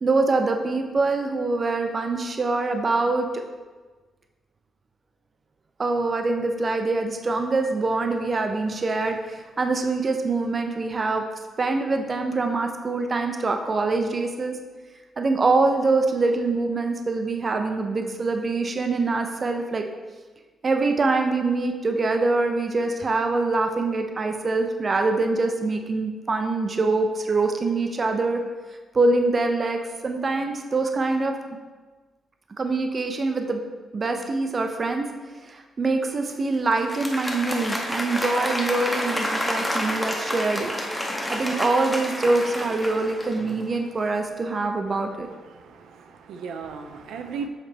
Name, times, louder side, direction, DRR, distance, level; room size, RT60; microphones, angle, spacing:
voice 1, 0.0-3.4 5.8-11.2 11.6-14.6 15.2-19.9 20.6-28.4 28.9-31.3 32.6-33.6 33.9-35.1 35.5-40.7 41.3-45.3, right 3 dB, 30° right, 5 dB, 0.4 m, -24 dB
Applause, 36.7-43.7, equal, 5° left, 0.7 m, -29 dB
voice 2, 45.4-47.5, right 5 dB, 85° right, 6 dB, 0.5 m, -36 dB
7.2 x 4.2 x 3.3 m, 1.3 s
cardioid pair, 150°, 0 cm